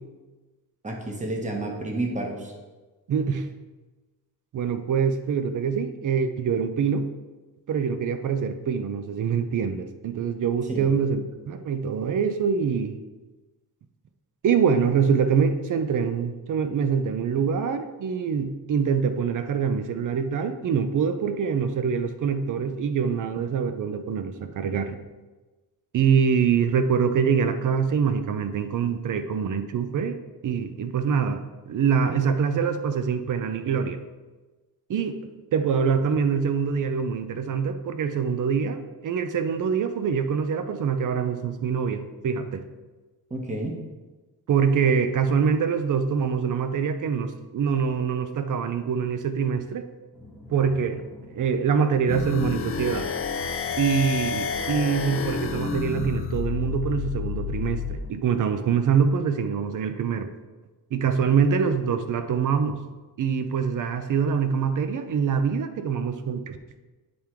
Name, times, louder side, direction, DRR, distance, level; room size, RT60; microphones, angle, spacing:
voice 1, 0.8-2.5 10.7-10.9 43.3-43.8, right 2 dB, 20° right, 1 dB, 1.1 m, -30 dB
voice 2, 3.1-3.5 4.5-7.1 7.7-11.2 11.5-12.9 14.4-25.0 25.9-30.2 30.4-34.0 34.9-42.6 44.5-49.9 50.5-51.1 51.3-53.1 53.8-60.3 60.9-62.8 63.2-66.6, right 6 dB, 55° right, 9 dB, 0.6 m, -24 dB
sound 1, 50.1-58.1, left 1 dB, 5° left, 0.8 m, -48 dB
sound 2, 52.1-58.0, left 6 dB, 40° left, 0.5 m, -29 dB
8.6 x 3.6 x 4.5 m, 1.2 s
wide cardioid pair, 155°, 37 cm